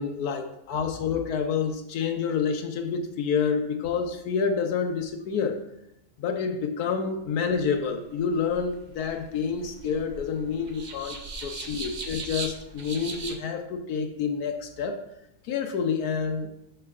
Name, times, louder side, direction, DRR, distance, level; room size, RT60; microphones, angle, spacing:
voice 1, 0.0-5.6 6.2-15.0 15.5-16.5, left 6 dB, 85° left, 5 dB, 1.2 m, -28 dB
sound 1, 8.0-13.4, right 3 dB, 55° right, 0.5 m, -39 dB
6.6 x 6.6 x 2.4 m, 0.82 s
omnidirectional pair, 1.6 m